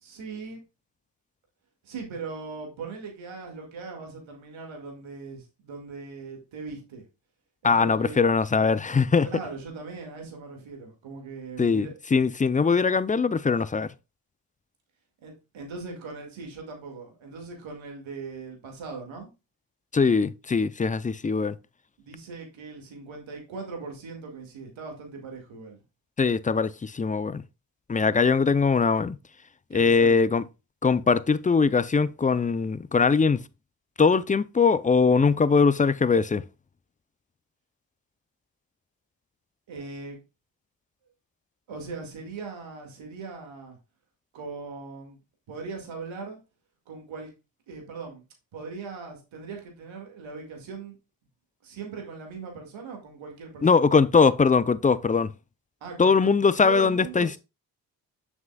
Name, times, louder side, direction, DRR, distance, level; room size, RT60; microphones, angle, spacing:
voice 1, 0.0-0.6 1.8-7.0 7.6-8.2 9.3-11.9 15.2-19.3 22.0-25.8 29.7-30.2 39.7-40.2 41.7-43.8 44.3-45.2 45.5-46.4 46.9-47.3 47.7-48.2 48.5-50.9 51.6-53.9 55.8-56.3 56.6-57.4, right 4 dB, 80° right, 2.1 m, -39 dB
voice 2, 7.6-9.3 11.6-13.9 19.9-21.5 26.2-27.4 27.9-29.2 29.7-30.4 30.8-33.4 34.0-36.4 53.6-55.3 56.0-57.4, left 5 dB, 20° left, 0.4 m, -21 dB
7.3 x 6.2 x 2.3 m
supercardioid pair, 45°, 47 cm